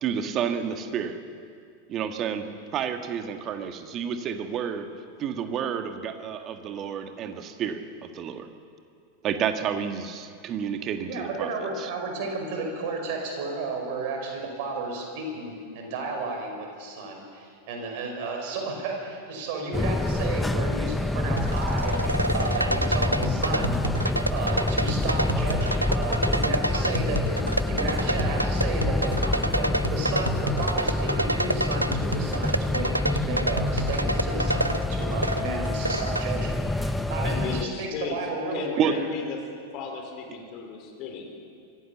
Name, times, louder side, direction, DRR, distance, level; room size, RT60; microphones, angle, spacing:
voice 1, 0.0-1.2 1.9-4.9 5.2-8.5 9.2-11.5 11.8-11.9 38.8-39.0, right 8 dB, 35° right, 7 dB, 1.7 m, -30 dB
voice 2, 11.0-23.8 24.3-39.0, right 3 dB, 50° right, 2 dB, 5.5 m, -33 dB
sound 1, 19.7-37.6, left 2 dB, 5° left, 0.7 m, -27 dB
sound 2, 21.4-36.3, right 1 dB, 90° right, 0.5 m, -29 dB
voice 3, 37.2-38.2 38.5-39.4 39.7-41.4, left 6 dB, 40° left, 3 dB, 4.1 m, -35 dB
24.5 x 15.5 x 7.3 m, 2.3 s
figure-of-eight pair, 90°, 0 cm